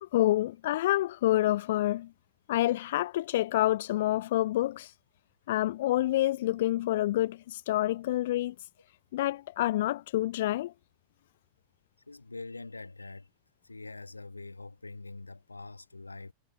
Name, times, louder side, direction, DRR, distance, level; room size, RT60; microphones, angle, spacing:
voice 1, 0.0-2.1 2.5-4.9 5.5-8.7 9.1-10.7, left 15 dB, 55° left, 0.4 m, -28 dB
voice 2, 12.1-13.3 13.6-16.3, left 3 dB, 80° left, 1.5 m, -44 dB
figure-of-eight pair, 90°, 0 cm